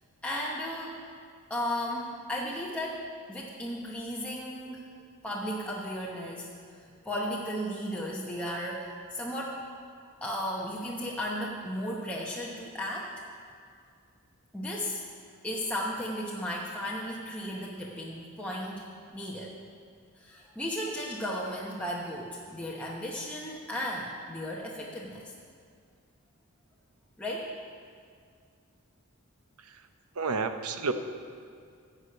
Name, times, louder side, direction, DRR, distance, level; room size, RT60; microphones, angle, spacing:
voice 1, 0.2-1.0 1.5-4.8 5.2-9.6 10.2-13.2 14.5-15.1 15.4-19.5 20.2-25.3 27.2-27.5, equal, 5° left, -4 dB, 0.9 m, -35 dB
voice 2, 30.1-30.9, right 4 dB, 80° right, 8 dB, 0.8 m, -31 dB
14.5 x 4.9 x 8.5 m, 2.2 s
head